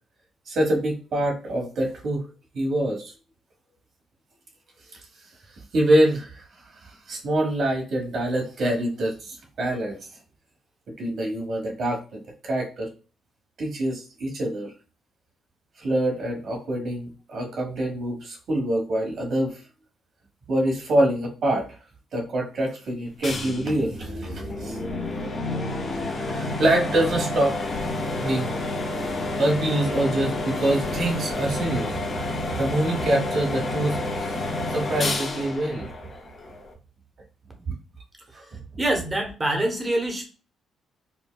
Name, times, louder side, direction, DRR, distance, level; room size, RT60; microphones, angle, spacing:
voice 1, 0.5-2.2 2.5-3.1 5.7-6.4 6.8-10.0 11.0-12.9 13.6-14.7 15.8-19.6 20.5-21.7 22.1-24.8 26.2-27.5 28.2-28.6 29.2-31.9 32.6-34.0 34.7-35.9 37.7-37.8 38.3-38.6, right 1 dB, 60° right, 0 dB, 1.3 m, -25 dB
sound 1, 23.2-36.7, left 2 dB, 40° left, 0.9 m, -29 dB
voice 2, 38.8-40.2, right 1 dB, 20° right, 3 dB, 0.9 m, -25 dB
4.3 x 2.2 x 2.2 m, 0.36 s
cardioid pair, 90°, 0 cm